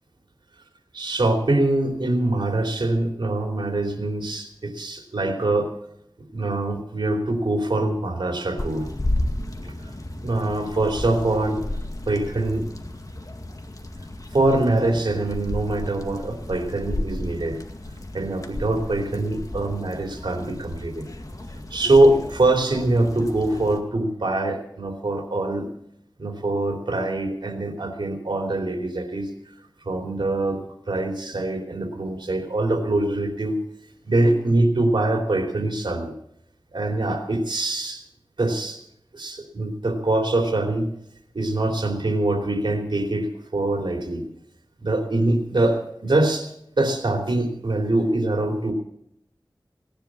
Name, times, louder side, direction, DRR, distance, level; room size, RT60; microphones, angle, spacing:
voice 1, 0.9-5.7 6.3-8.9 9.6-9.7 10.2-11.6 12.1-12.7 14.3-17.6 18.1-21.1 21.7-25.7 26.2-29.3 29.8-30.6 30.9-33.6 34.0-36.1 36.7-38.0 38.4-38.8 39.1-40.9 41.3-44.2 44.8-48.7, right 2 dB, 90° right, 3 dB, 2.9 m, -23 dB
sound 1, 8.6-23.8, left 1 dB, 45° left, 2.0 m, -33 dB
18.0 x 10.5 x 7.4 m, 0.73 s
wide cardioid pair, 45°, 8 cm